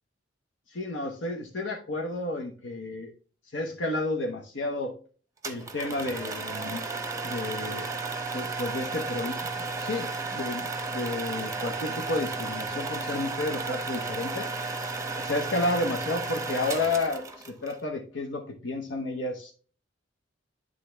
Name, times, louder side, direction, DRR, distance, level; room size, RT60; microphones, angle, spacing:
voice 1, 0.7-3.1 3.5-5.0 5.4-6.8 7.2-7.9 8.3-9.5 9.8-14.5 15.2-19.5, left 2 dB, 85° left, 1 dB, 0.9 m, -31 dB
sound 1, 5.4-17.7, right 3 dB, 15° right, 0.8 m, -33 dB
9.7 x 3.7 x 3.3 m, 0.39 s
head